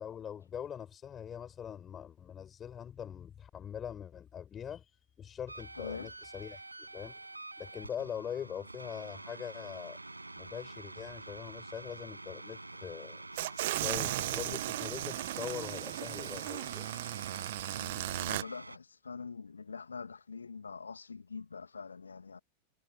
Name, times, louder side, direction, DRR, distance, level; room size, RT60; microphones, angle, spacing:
voice 1, 0.0-7.2 7.6-10.0 10.3-13.2 13.8-16.9, left 8 dB, 25° left, 6.4 m, -43 dB
sound 1, 5.5-18.8, right 2 dB, 85° right, 6.4 m, -47 dB
voice 2, 5.8-6.1 17.7-22.4, left 5 dB, 75° left, 2.4 m, -44 dB
sound 2, 13.4-18.4, right 16 dB, 55° right, 0.5 m, -36 dB
figure-of-eight pair, 90°, 0 cm